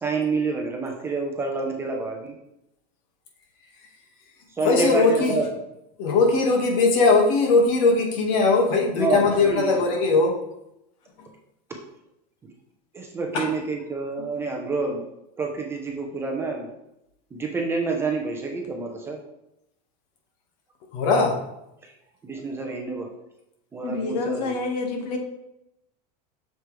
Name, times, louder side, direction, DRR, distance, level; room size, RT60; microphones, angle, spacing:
voice 1, 0.0-2.3 4.6-5.4 9.0-9.8 12.9-15.0 15.4-16.7 17.3-19.2 22.2-23.1 23.7-24.5, right 3 dB, 10° right, 1 dB, 0.8 m, -28 dB
voice 2, 4.6-5.4 6.0-10.3 13.3-13.5 20.9-21.3, left 3 dB, 55° left, 1 dB, 2.0 m, -20 dB
voice 3, 23.8-25.2, left 3 dB, 85° left, 3 dB, 1.8 m, -28 dB
8.1 x 6.7 x 3.4 m, 0.84 s
supercardioid pair, 175°, 20 cm